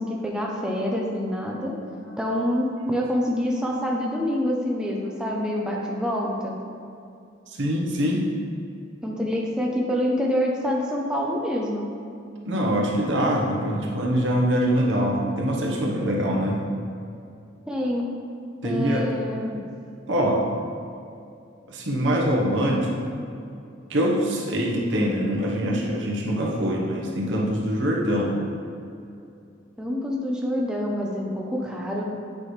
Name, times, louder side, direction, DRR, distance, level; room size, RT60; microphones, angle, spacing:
voice 1, 0.0-1.7 2.2-6.6 9.0-11.9 17.7-18.1 18.6-19.6 29.8-32.0, equal, 5° right, -2 dB, 0.5 m, -26 dB
voice 2, 7.5-8.3 12.4-16.6 18.6-19.1 20.1-20.4 21.7-22.9 23.9-28.3, equal, 75° right, -2 dB, 1.1 m, -24 dB
8.5 x 4.8 x 3.2 m, 2.6 s
head